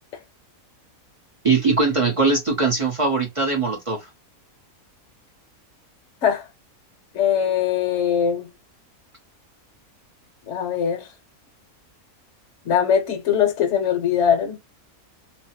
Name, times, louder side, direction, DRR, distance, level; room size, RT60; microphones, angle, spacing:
voice 1, 1.4-4.1, right 4 dB, 30° right, 0.6 m, -21 dB
voice 2, 7.1-8.5 10.5-11.1 12.6-14.6, left 8 dB, 60° left, 1.0 m, -21 dB
2.8 x 2.0 x 2.8 m
omnidirectional pair, 1.6 m